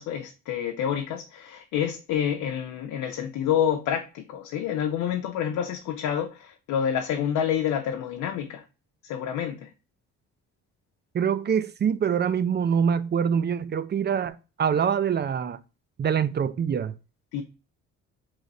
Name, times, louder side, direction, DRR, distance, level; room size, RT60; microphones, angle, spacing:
voice 1, 0.0-8.6 9.0-9.7 17.3-17.4, left 9 dB, 85° left, 0.6 m, -28 dB
voice 2, 11.1-15.6 16.0-16.9, right 7 dB, 35° right, 0.4 m, -25 dB
3.9 x 3.1 x 3.9 m
cardioid pair, 90°, 30 cm